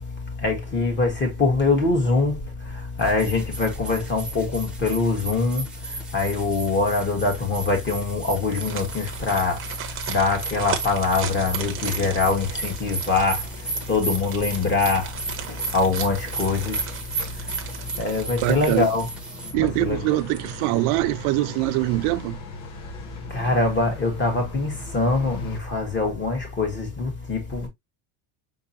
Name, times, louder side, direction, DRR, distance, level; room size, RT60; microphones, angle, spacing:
voice 1, 0.4-2.4 3.0-5.6 6.1-9.6 10.1-13.4 13.9-15.1 15.7-16.7 18.0-19.1 19.6-20.0 23.3-27.7, left 3 dB, 20° left, 1.7 m, -23 dB
sound 1, 3.0-19.5, right 3 dB, ahead, 1.1 m, -35 dB
sound 2, 8.4-19.3 19.7-19.8 20.2-20.9 21.2-21.3, right 9 dB, 25° right, 0.9 m, -37 dB
sound 3, 11.1-25.6, left 2 dB, 85° left, 2.0 m, -40 dB
voice 2, 18.4-18.9 19.5-22.4, right 18 dB, 75° right, 0.7 m, -23 dB
5.5 x 3.6 x 2.7 m
cardioid pair, 170°, 49 cm